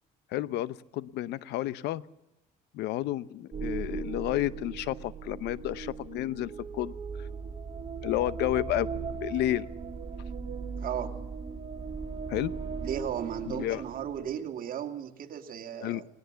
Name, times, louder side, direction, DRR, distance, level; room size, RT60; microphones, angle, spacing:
voice 1, 0.3-2.0 2.7-6.9 7.2-7.3 8.0-8.9 9.2-9.7 12.3-12.5 13.5-13.8 15.8-16.0, left 14 dB, 85° left, 18 dB, 0.8 m, -31 dB
sound 1, 3.5-14.3, right 5 dB, 35° right, 2.7 m, -38 dB
voice 2, 10.8-11.1 12.8-16.1, right 9 dB, 55° right, 5 dB, 2.5 m, -35 dB
19.5 x 17.5 x 8.0 m, 0.92 s
cardioid pair, 110°, 17 cm